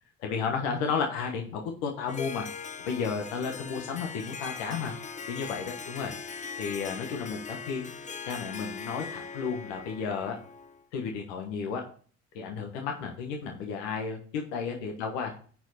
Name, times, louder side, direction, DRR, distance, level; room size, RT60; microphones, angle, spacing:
voice 1, 0.2-4.9 5.3-7.9 8.3-10.4 10.9-11.8 12.3-15.4, left 5 dB, 75° left, 2 dB, 1.3 m, -33 dB
Harp, 2.1-10.8, left 5 dB, 20° left, 0.7 m, -40 dB
10.0 x 4.7 x 4.2 m, 0.43 s
hypercardioid pair, 60°, 35 cm